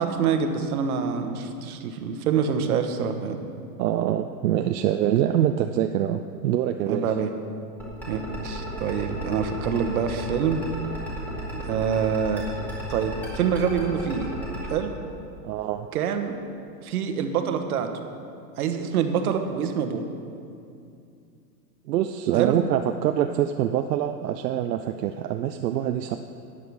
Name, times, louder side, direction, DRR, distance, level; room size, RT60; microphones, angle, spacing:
voice 1, 0.0-3.4 6.9-7.3 8.1-10.6 11.5-12.5 12.9-14.3 14.7-14.9 15.9-16.3 16.8-18.0 18.6-20.0 22.3-22.6, right 7 dB, 65° right, 6 dB, 1.2 m, -26 dB
voice 2, 3.8-7.1 15.4-15.9 21.9-26.2, right 11 dB, 80° right, 7 dB, 0.6 m, -25 dB
sound 1, 7.8-14.7, right 1 dB, 5° left, 1.9 m, -34 dB
12.5 x 8.5 x 4.7 m, 2.5 s
supercardioid pair, 155°, 48 cm